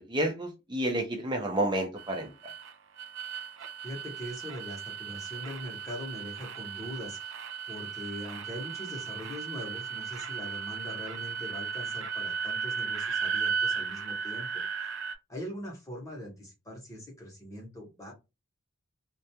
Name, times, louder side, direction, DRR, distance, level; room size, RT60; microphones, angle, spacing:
voice 1, 0.0-2.5, right 1 dB, 20° right, 0.6 m, -30 dB
sound 1, 2.0-15.1, right 6 dB, 60° right, 0.4 m, -35 dB
voice 2, 3.8-7.3 7.7-14.6 15.3-18.1, equal, 15° left, 0.8 m, -41 dB
2.3 x 2.2 x 2.7 m
head